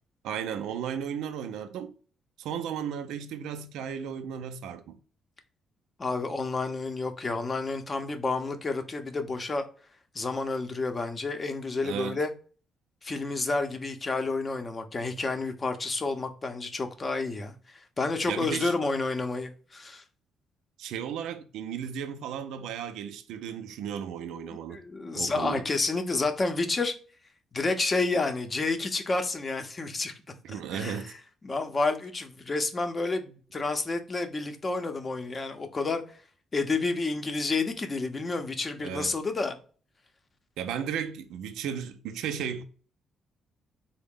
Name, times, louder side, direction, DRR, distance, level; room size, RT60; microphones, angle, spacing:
voice 1, 0.2-1.9 2.4-5.0 11.8-12.2 18.3-18.7 20.8-24.8 25.1-25.7 30.4-31.1 38.8-39.2 40.6-42.6, right 8 dB, 90° right, 0.4 m, -35 dB
voice 2, 6.0-9.6 10.1-12.3 13.0-20.0 24.5-26.9 27.5-30.1 30.7-31.1 31.4-36.0 36.5-39.6, left 3 dB, 30° left, 0.6 m, -30 dB
3.7 x 2.1 x 3.6 m
cardioid pair, 90°, 0 cm